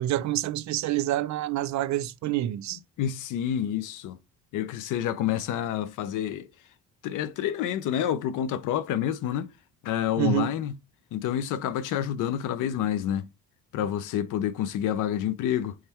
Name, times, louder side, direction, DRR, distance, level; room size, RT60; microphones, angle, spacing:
voice 1, 0.0-2.8 10.2-10.5, right 14 dB, 65° right, 0.5 m, -27 dB
voice 2, 3.0-4.2 4.5-6.5 7.0-9.5 9.8-10.7 11.1-13.3 13.7-15.7, left 10 dB, 85° left, 0.6 m, -28 dB
3.5 x 3.1 x 4.3 m
cardioid pair, 90°, 30 cm